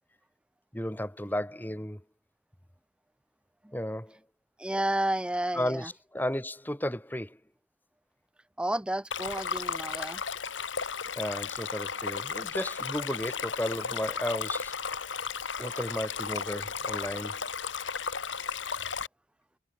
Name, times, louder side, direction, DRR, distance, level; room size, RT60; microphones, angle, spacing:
voice 1, 0.7-2.0 3.7-4.2 5.5-7.4 11.1-15.2 15.6-17.4, left 1 dB, 10° left, 1.7 m, -34 dB
voice 2, 4.6-5.9 8.6-10.2, right 1 dB, 5° right, 0.4 m, -31 dB
Stream, 9.1-19.1, left 6 dB, 85° left, 2.4 m, -34 dB
head